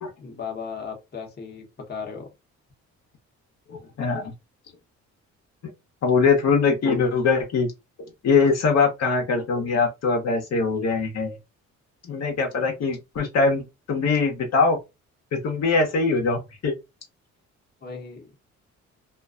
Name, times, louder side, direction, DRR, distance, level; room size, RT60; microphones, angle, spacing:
voice 1, 0.2-2.3 17.8-18.3, left 6 dB, 35° left, 1.0 m, -36 dB
voice 2, 3.7-4.3 6.0-7.7 8.0-11.4 12.0-14.8 15.3-16.7, left 4 dB, 60° left, 0.9 m, -22 dB
2.5 x 2.2 x 2.4 m
cardioid pair, 90°, 30 cm